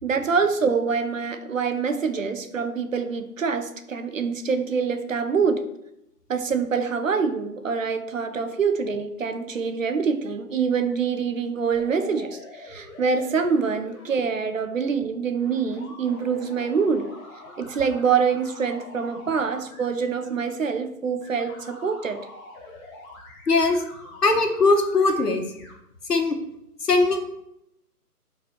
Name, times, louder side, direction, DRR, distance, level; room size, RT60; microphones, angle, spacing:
voice 1, 0.0-5.6 6.3-17.1 17.6-22.2, right 5 dB, 55° right, 9 dB, 1.1 m, -25 dB
sound 1, 11.7-14.1 15.4-19.8 20.2-20.5 21.2-25.7, left 2 dB, 15° left, 1.5 m, -45 dB
voice 2, 23.5-23.8 24.2-25.4 26.1-26.4 26.8-27.2, left 3 dB, 85° left, 4 dB, 1.9 m, -20 dB
11.0 x 5.1 x 4.8 m, 0.82 s
hypercardioid pair, 155°, 46 cm